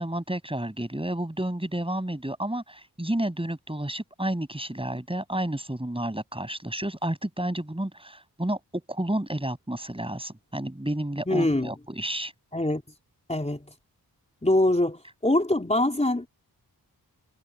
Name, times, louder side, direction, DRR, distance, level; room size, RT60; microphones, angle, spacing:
voice 1, 0.0-12.3, right 1 dB, 15° right, 7.9 m, -31 dB
voice 2, 11.3-11.7 12.5-12.8 13.3-13.7 14.4-16.3, left 1 dB, 15° left, 4.5 m, -24 dB
wide cardioid pair, 65°, 40 cm